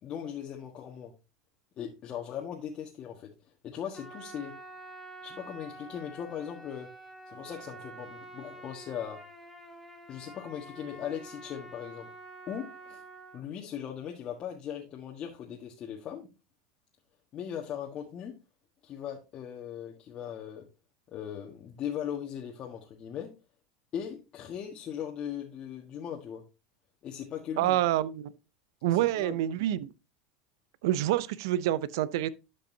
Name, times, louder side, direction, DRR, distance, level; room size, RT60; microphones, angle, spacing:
voice 1, 0.0-1.1 1.8-3.3 3.6-4.5 5.2-6.9 7.3-9.2 10.1-12.1 12.5-13.0 13.3-16.3 17.3-18.3 18.8-20.6 21.1-23.3 23.9-26.4 27.0-27.8 28.9-29.4, left 9 dB, 40° left, 1.5 m, -39 dB
Trumpet, 3.9-13.4, right 2 dB, 5° right, 3.4 m, -47 dB
voice 2, 27.6-28.3 28.8-29.9 30.8-32.3, right 13 dB, 70° right, 0.5 m, -27 dB
12.0 x 5.3 x 2.7 m
hypercardioid pair, 100°, 2 cm